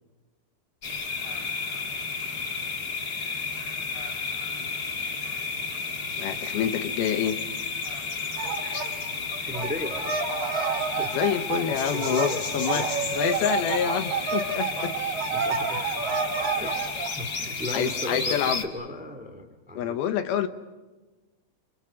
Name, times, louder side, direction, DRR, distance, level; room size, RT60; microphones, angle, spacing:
sound 1, 0.8-18.6, left 4 dB, 40° left, 1.4 m, -32 dB
voice 1, 6.2-7.4 11.1-14.9 17.7-18.6 19.8-20.5, left 9 dB, 75° left, 9 dB, 2.8 m, -27 dB
sound 2, 8.4-8.9 9.2-17.1, right 5 dB, 55° right, 2.5 m, -29 dB
voice 2, 9.4-10.1 10.9-11.1 11.9-12.9 15.3-15.8 16.5-16.7 17.2-20.0, left 2 dB, 5° right, 7 dB, 0.8 m, -35 dB
30.0 x 26.0 x 6.4 m, 1.2 s
omnidirectional pair, 4.7 m